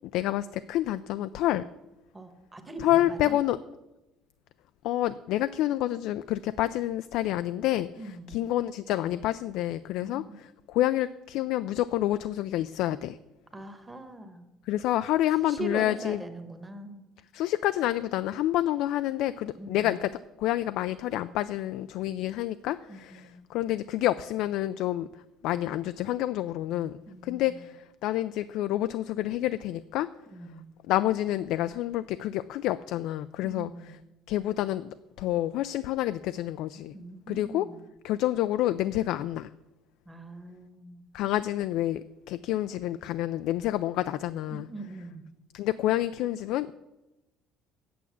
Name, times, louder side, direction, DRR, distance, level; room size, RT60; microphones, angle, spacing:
voice 1, 0.1-1.7 2.8-3.6 4.8-7.9 8.3-13.2 14.7-16.2 17.3-20.1 20.4-25.1 25.4-27.0 27.2-30.1 30.9-33.7 34.3-36.9 37.3-37.7 38.0-39.5 41.1-42.0 42.3-44.7 45.5-46.7, left 14 dB, 65° left, 13 dB, 0.3 m, -28 dB
voice 2, 2.1-3.4 8.0-8.4 10.0-10.4 13.5-14.5 15.4-17.0 19.6-20.0 22.9-23.4 27.1-27.7 30.3-30.6 33.4-33.9 36.9-37.8 40.1-41.0 44.5-45.3, right 2 dB, 10° right, 7 dB, 1.1 m, -41 dB
8.6 x 6.8 x 8.4 m, 1.0 s
cardioid pair, 155°, 0 cm